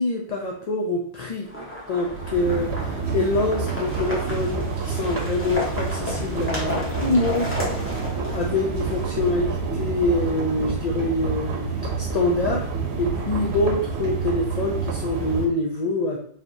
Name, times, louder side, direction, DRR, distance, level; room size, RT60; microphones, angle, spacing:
voice 1, 0.0-1.5 1.9-7.5 8.3-11.6 12.0-12.7 13.0-16.2, left 2 dB, 45° left, -1 dB, 0.6 m, -25 dB
sound 1, 1.4-9.4, left 1 dB, 10° left, 1.1 m, -33 dB
sound 2, 2.1-15.5, right 4 dB, 70° right, 1.0 m, -28 dB
4.9 x 2.9 x 2.7 m, 0.62 s
omnidirectional pair, 1.2 m